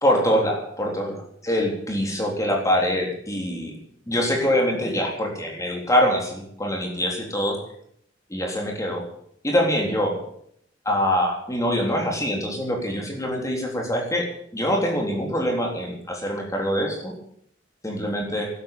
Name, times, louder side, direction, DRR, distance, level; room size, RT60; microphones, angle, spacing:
voice 1, 0.0-1.1 1.4-3.7 4.1-7.6 8.3-9.0 9.4-10.1 10.9-14.3 14.5-17.1 17.8-18.5, equal, 15° left, 0 dB, 3.6 m, -24 dB
13.0 x 11.0 x 9.1 m, 0.69 s
head